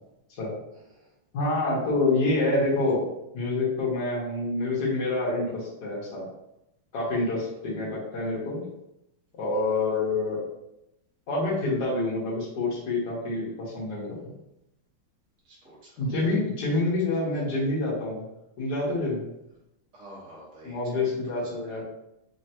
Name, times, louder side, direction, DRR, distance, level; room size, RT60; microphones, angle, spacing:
voice 1, 0.7-1.1 7.0-7.2 9.5-9.6 15.4-16.4 16.6-17.3 19.9-21.8, right 1 dB, 45° right, -6 dB, 1.5 m, -48 dB
voice 2, 1.3-3.0 3.3-6.3 6.9-8.6 9.4-10.4 11.3-14.3 16.0-18.3 18.6-19.2 20.6-21.8, left 2 dB, 55° left, -5 dB, 1.7 m, -27 dB
4.2 x 2.9 x 2.8 m, 0.86 s
omnidirectional pair, 2.3 m